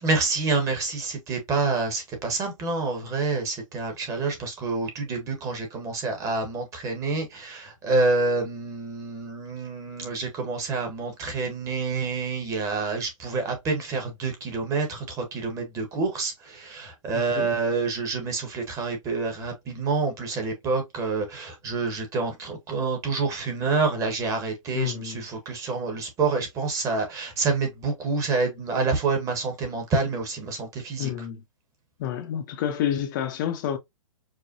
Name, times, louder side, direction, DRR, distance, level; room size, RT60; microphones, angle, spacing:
voice 1, 0.0-31.1, right 3 dB, 20° right, 1.1 m, -27 dB
voice 2, 17.1-17.5 24.7-25.2 31.0-31.4 32.0-33.8, left 10 dB, 35° left, 0.7 m, -29 dB
4.8 x 2.1 x 2.6 m
hypercardioid pair, 145°, 17 cm